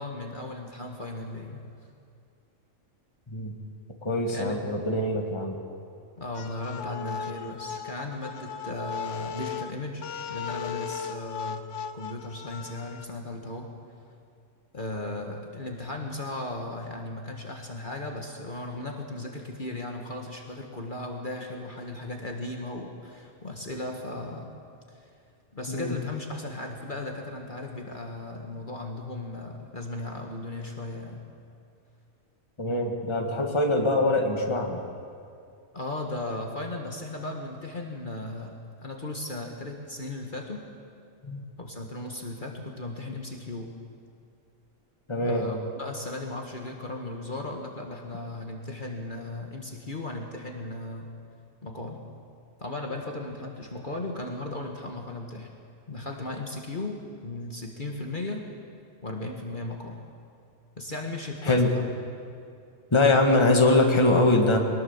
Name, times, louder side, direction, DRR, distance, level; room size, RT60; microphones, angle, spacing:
voice 1, 0.0-1.6 4.3-4.7 6.2-11.6 11.9-13.7 14.7-24.5 24.9-25.1 25.5-31.2 35.7-40.6 41.6-43.7 45.2-51.1 51.6-52.0 52.6-55.5 55.9-58.5 59.0-60.0 60.8-61.9, left 2 dB, 40° left, 1 dB, 1.8 m, -36 dB
voice 2, 4.0-5.6 25.7-25.9 32.6-34.8 41.2-41.4 45.1-45.4 61.5-61.7 62.9-64.6, left 2 dB, 20° left, 2 dB, 1.8 m, -23 dB
sound 1, 6.3-13.0, left 7 dB, 70° left, 1.1 m, -37 dB
22.0 x 19.5 x 7.2 m, 2.5 s
omnidirectional pair, 1.3 m